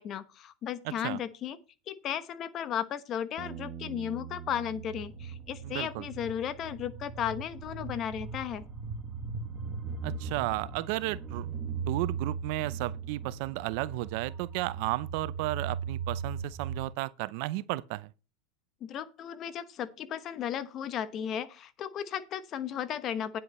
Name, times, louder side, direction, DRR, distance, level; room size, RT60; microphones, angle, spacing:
voice 1, 0.0-1.6 1.9-8.6 18.8-23.4, left 9 dB, 35° left, 1.1 m, -35 dB
voice 2, 0.8-1.2 5.6-6.0 10.0-11.5 11.9-18.1, right 18 dB, 60° right, 0.6 m, -33 dB
Bass guitar, 3.4-9.6, right 9 dB, 45° right, 1.1 m, -46 dB
sound 1, 4.9-16.9, right 5 dB, 20° right, 1.7 m, -38 dB
9.8 x 7.7 x 4.3 m
supercardioid pair, 130°, 0 cm